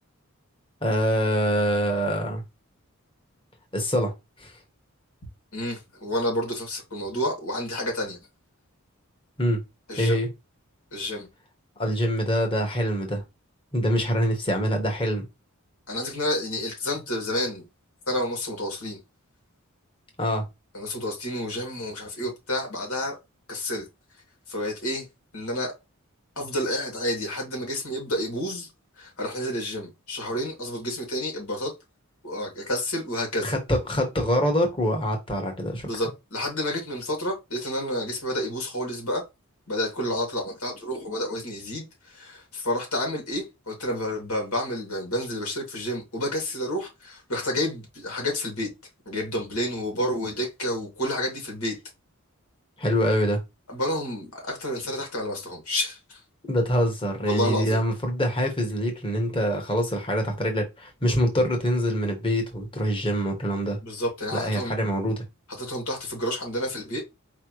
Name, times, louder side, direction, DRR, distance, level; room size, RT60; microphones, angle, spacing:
voice 1, 0.8-2.4 3.7-4.1 4.4-4.5 9.4-9.6 10.0-10.3 11.8-13.2 13.7-15.2 20.2-20.4 33.4-35.9 52.8-53.4 56.5-63.8 64.3-65.2, equal, 25° left, 1.4 m, -25 dB
voice 2, 5.5-8.2 9.9-10.2 10.9-11.3 15.9-17.7 18.1-19.0 20.7-23.2 23.5-23.8 24.5-25.1 25.3-25.7 26.4-28.7 29.0-31.7 32.2-33.5 35.8-39.2 39.7-48.7 49.1-51.8 53.7-56.2 57.2-57.8 63.8-64.7 65.6-67.0, left 1 dB, 85° left, 2.5 m, -30 dB
4.8 x 3.3 x 3.1 m
head